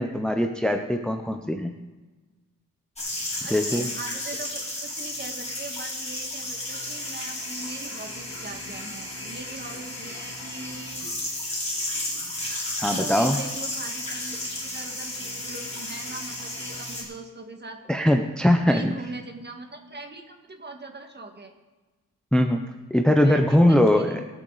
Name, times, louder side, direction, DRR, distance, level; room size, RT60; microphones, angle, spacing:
voice 1, 0.0-1.7 3.5-3.9 12.8-13.4 17.9-18.9 22.3-22.6 22.9-24.2, left 1 dB, ahead, 5 dB, 0.7 m, -21 dB
sound 1, 3.0-17.0, left 1 dB, 20° left, 4.6 m, -33 dB
voice 2, 3.4-4.7 4.9-11.0 12.9-17.8 18.7-21.5 23.1-24.3, right 3 dB, 30° right, 4 dB, 1.8 m, -40 dB
23.0 x 7.7 x 4.1 m, 1.2 s
cardioid pair, 100°, 34 cm